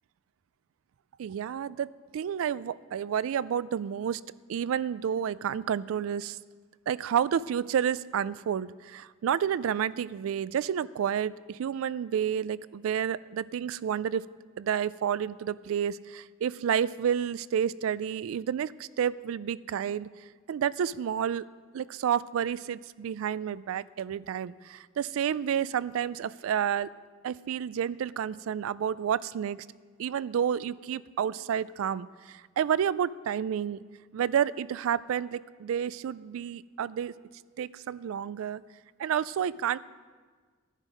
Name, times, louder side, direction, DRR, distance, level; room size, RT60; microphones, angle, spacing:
voice 1, 1.2-4.2 4.5-6.4 6.9-14.2 14.6-20.1 20.5-21.4 21.7-26.9 27.2-29.7 30.0-33.8 34.1-37.1 37.6-38.6 39.0-39.8, right 8 dB, 75° right, 20 dB, 0.3 m, -30 dB
11.5 x 9.0 x 5.0 m, 1.5 s
head